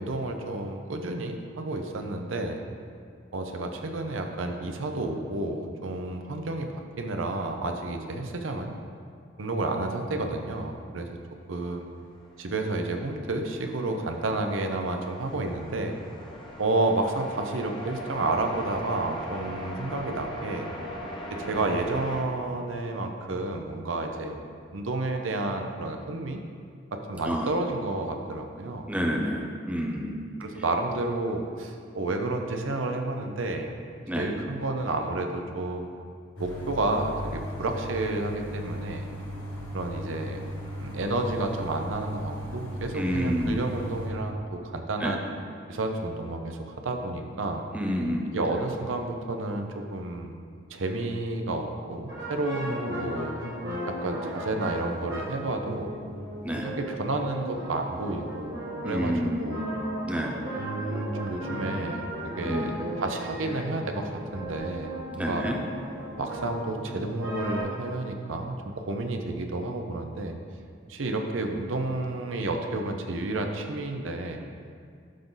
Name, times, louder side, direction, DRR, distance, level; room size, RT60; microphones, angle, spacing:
voice 1, 0.0-2.6 3.3-8.7 9.4-11.2 11.5-11.9 12.4-16.0 16.6-20.7 21.5-24.4 24.7-26.4 26.9-28.9 30.4-33.7 34.2-35.9 36.4-39.1 39.7-40.4 40.8-45.2 45.7-47.6 48.3-50.3 50.7-53.3 53.9-55.9 56.6-58.6 58.8-59.6 60.6-62.1 62.3-65.4 66.2-70.4 70.9-74.4, right 2 dB, 85° right, 4 dB, 0.7 m, -31 dB
sound 1, 12.0-22.2, equal, 25° left, 1.0 m, -40 dB
voice 2, 28.9-30.2 34.1-34.3 42.9-43.6 45.0-45.1 47.7-48.2 56.4-56.7 58.8-59.6 60.1-60.3 62.4-62.8 65.2-65.6, equal, 5° right, 0 dB, 0.6 m, -29 dB
sound 2, 36.4-44.1, equal, 75° left, 1.7 m, -37 dB
sound 3, 52.1-67.6, right 1 dB, 55° right, 1.7 m, -36 dB
11.5 x 4.0 x 3.9 m, 2.2 s
head